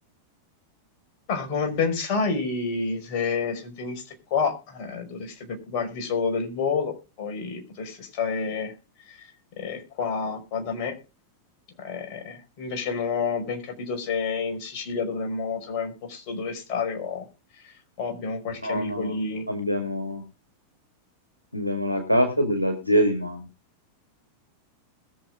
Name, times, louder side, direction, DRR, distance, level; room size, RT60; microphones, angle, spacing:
voice 1, 1.3-8.7 9.0-9.3 9.6-10.9 11.8-17.3 18.0-19.4, left 5 dB, 45° left, 4 dB, 5.5 m, -29 dB
voice 2, 18.6-19.2 19.5-20.2 21.5-23.4, equal, 85° left, 5 dB, 2.1 m, -24 dB
21.5 x 7.2 x 3.7 m, 0.30 s
figure-of-eight pair, 90°, 0 cm